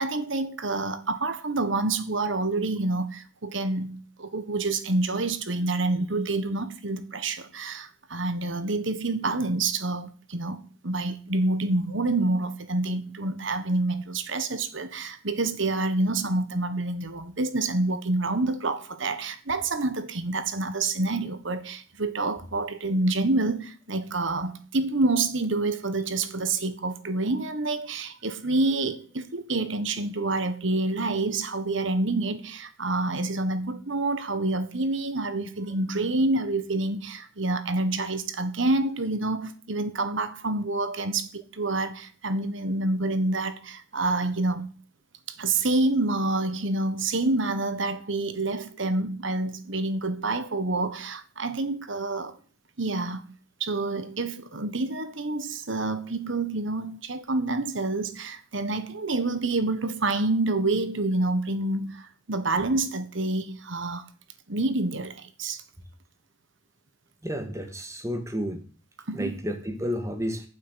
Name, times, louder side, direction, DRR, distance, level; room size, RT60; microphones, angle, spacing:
voice 1, 0.0-44.7 45.4-52.4 52.8-53.2 53.6-64.0 64.5-65.6 69.1-69.4, right 2 dB, 65° right, 1.5 m, -27 dB
voice 2, 67.2-68.6 69.1-70.5, equal, 15° right, 2.1 m, -31 dB
9.4 x 7.6 x 8.1 m
head